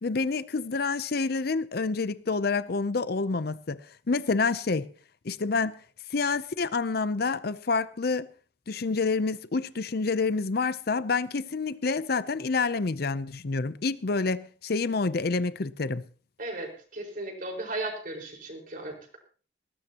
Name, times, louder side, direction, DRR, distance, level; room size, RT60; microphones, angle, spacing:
voice 1, 0.0-4.9 5.2-5.8 6.1-8.3 8.7-16.0, left 4 dB, 55° left, 0.6 m, -28 dB
voice 2, 16.4-19.0, right 2 dB, 50° right, 5.0 m, -36 dB
20.0 x 18.0 x 2.9 m
head